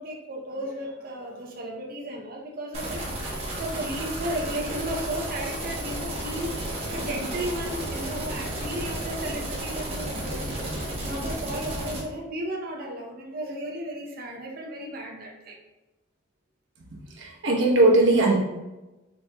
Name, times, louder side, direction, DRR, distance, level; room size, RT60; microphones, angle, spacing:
voice 1, 0.0-6.6 6.9-10.5 11.0-15.6, right 1 dB, 45° right, -1 dB, 0.6 m, -34 dB
sound 1, 2.7-12.0, right 1 dB, 30° right, 1.0 m, -32 dB
voice 2, 17.2-18.4, right 2 dB, 70° right, -2 dB, 1.0 m, -19 dB
4.3 x 4.3 x 2.2 m, 1.1 s
head